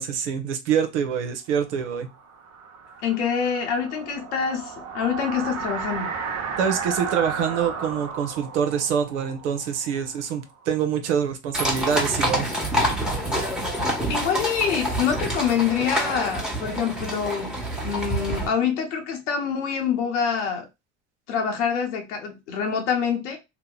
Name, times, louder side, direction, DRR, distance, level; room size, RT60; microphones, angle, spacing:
voice 1, 0.0-2.1 6.6-12.5, right 7 dB, 90° right, 0.7 m, -25 dB
sound 1, 1.9-10.6, right 6 dB, 50° right, 0.9 m, -34 dB
voice 2, 3.0-6.2 14.1-17.6 17.8-20.7 21.3-23.4, left 7 dB, 90° left, 0.8 m, -26 dB
sound 2, 11.5-18.5, equal, ahead, 1.1 m, -27 dB
2.8 x 2.1 x 3.7 m
hypercardioid pair, 85°, 34 cm